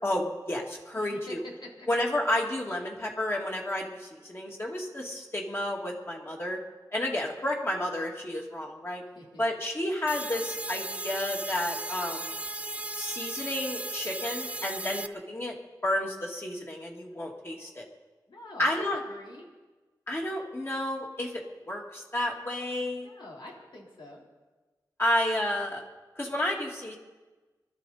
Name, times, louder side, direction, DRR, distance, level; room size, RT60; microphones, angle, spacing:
voice 1, 0.0-1.4 1.9-6.6 6.9-9.0 9.4-12.3 12.9-15.5 15.8-17.9 18.6-19.0 20.1-23.1 25.0-25.8 26.2-27.0, left 1 dB, 30° left, -1 dB, 2.4 m, -31 dB
voice 2, 0.9-1.9 9.1-9.4 18.3-19.5 23.0-24.2, left 1 dB, 85° left, -2 dB, 3.7 m, -45 dB
sound 1, 10.1-15.1, right 2 dB, 15° right, 0.5 m, -36 dB
23.5 x 13.0 x 4.3 m, 1.2 s
wide cardioid pair, 110°, 8 cm